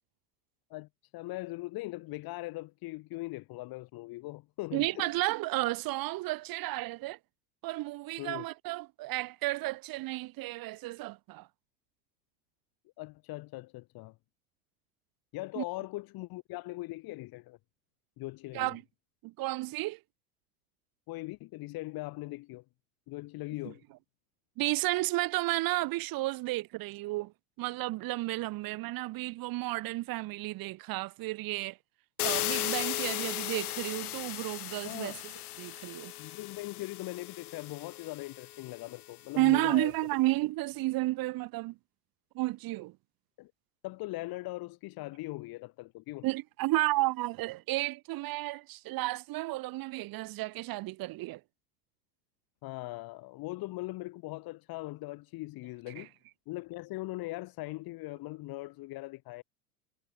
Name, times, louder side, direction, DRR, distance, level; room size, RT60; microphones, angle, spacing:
voice 1, 0.7-5.1 8.2-8.4 13.0-14.1 15.3-17.6 18.2-18.8 21.1-22.6 23.1-23.8 34.8-35.2 36.2-39.9 43.4-43.5 43.8-46.3 52.6-56.1 56.5-59.4, left 20 dB, 55° left, 6.1 m, -40 dB
voice 2, 4.7-7.2 7.6-11.5 15.6-15.7 18.5-18.8 19.2-20.0 24.6-27.3 27.6-31.8 32.2-35.1 35.6-36.1 39.4-41.7 42.3-42.9 46.2-51.4 56.0-56.1, right 19 dB, 50° right, 2.8 m, -32 dB
sound 1, 32.2-39.0, left 15 dB, 80° left, 0.8 m, -36 dB
hypercardioid pair, 85°, 44 cm